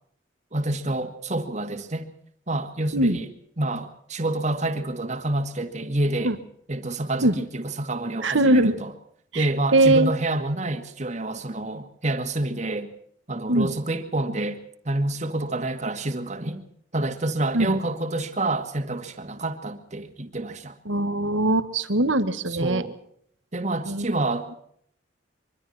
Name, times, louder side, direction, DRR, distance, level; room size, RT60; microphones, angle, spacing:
voice 1, 0.5-2.1 2.5-3.3 3.6-6.4 6.7-8.9 9.3-12.9 13.3-16.6 16.9-20.8 22.5-23.0 23.5-24.5, right 2 dB, 40° right, 2.2 m, -28 dB
voice 2, 8.2-8.8 9.3-9.5 9.7-10.1 13.5-13.7 17.5-17.7 20.8-22.8 23.9-24.1, right 1 dB, 90° right, 1.7 m, -21 dB
25.0 x 24.0 x 4.3 m
head